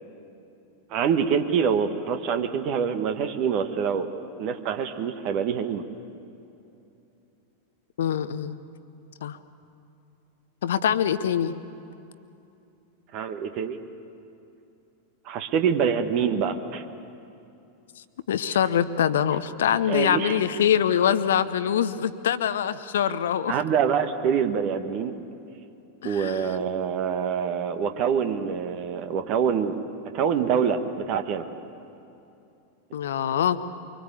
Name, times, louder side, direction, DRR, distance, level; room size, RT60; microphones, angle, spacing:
voice 1, 0.9-4.1 4.4-5.8 13.1-13.8 15.2-16.8 19.9-20.4 23.5-25.2 26.0-29.8 30.1-31.5, right 7 dB, 40° right, 8 dB, 1.5 m, -25 dB
voice 2, 8.0-8.6 9.2-9.4 10.6-11.5 18.3-23.5 26.0-26.4 32.9-33.6, left 9 dB, 60° left, 13 dB, 0.8 m, -24 dB
24.5 x 24.5 x 8.4 m, 2.8 s
figure-of-eight pair, 90°, 0 cm